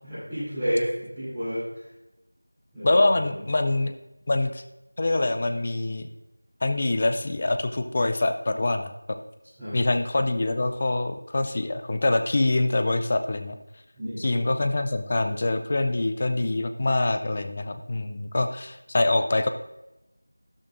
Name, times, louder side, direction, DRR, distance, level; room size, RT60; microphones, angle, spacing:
voice 1, 0.0-1.6 2.7-3.3 9.6-9.8 14.0-14.2, equal, ahead, -28 dB, 3.2 m, -30 dB
voice 2, 2.8-3.9 4.3-4.6 5.0-6.1 6.6-8.9 9.7-13.6 14.2-19.5, left 2 dB, 20° left, 8 dB, 0.4 m, -24 dB
12.5 x 12.0 x 2.6 m, 0.96 s
figure-of-eight pair, 180°, 0 cm